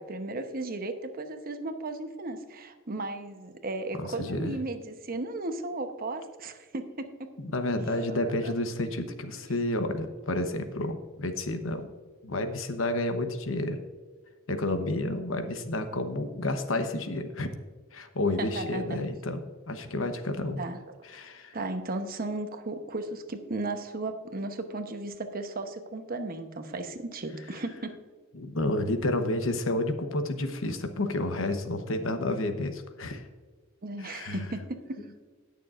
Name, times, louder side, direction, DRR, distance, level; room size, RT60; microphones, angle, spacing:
voice 1, 0.0-7.3 8.1-8.5 18.4-19.0 20.6-20.8 21.5-28.0 33.8-35.0, right 2 dB, 45° right, 7 dB, 0.9 m, -35 dB
voice 2, 3.9-4.5 7.4-11.9 12.2-13.8 14.5-17.5 17.9-20.6 21.1-21.6 28.3-33.3 34.0-34.4 35.0-35.1, left 1 dB, 75° left, 7 dB, 1.0 m, -30 dB
18.5 x 6.8 x 2.5 m, 1.5 s
head